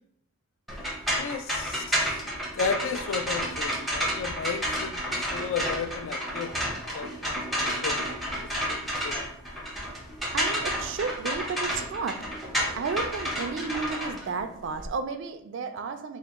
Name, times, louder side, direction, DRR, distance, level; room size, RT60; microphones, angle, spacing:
sound 1, 0.7-14.9, equal, ahead, 0.5 m, -31 dB
voice 1, 1.2-2.1 2.6-6.5 6.9-8.0 8.6-9.2, left 6 dB, 70° left, 10 dB, 0.3 m, -34 dB
voice 2, 10.3-12.2 12.7-16.2, right 5 dB, 60° right, 8 dB, 0.3 m, -32 dB
3.8 x 2.1 x 3.5 m, 0.71 s
head